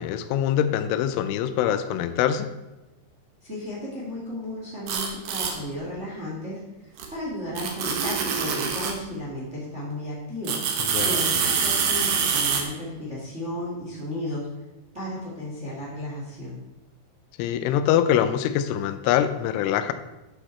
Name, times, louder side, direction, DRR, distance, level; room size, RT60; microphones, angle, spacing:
voice 1, 0.0-2.5 10.8-11.2 17.4-19.9, left 10 dB, 85° left, 11 dB, 3.2 m, -24 dB
voice 2, 3.4-14.5 14.9-16.6, left 1 dB, 20° right, -5 dB, 1.8 m, -34 dB
sound 1, 4.9-5.5 7.0-7.1 7.6-9.0 10.4-12.6, right 6 dB, 65° right, 2.4 m, -25 dB
12.0 x 8.0 x 4.3 m, 1.0 s
omnidirectional pair, 5.6 m